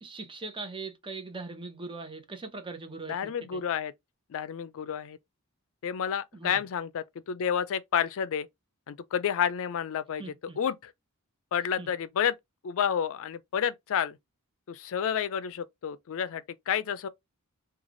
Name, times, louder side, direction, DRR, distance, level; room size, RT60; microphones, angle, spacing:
voice 1, 0.0-3.6 6.3-6.6 10.2-10.6 11.8-11.9, right 3 dB, 25° right, 0.7 m, -40 dB
voice 2, 3.1-3.9 4.3-5.2 5.8-8.5 8.9-10.2 10.6-10.9 11.5-12.3 12.6-14.2 14.7-17.1, left 8 dB, 65° left, 0.4 m, -30 dB
3.1 x 2.4 x 3.8 m
head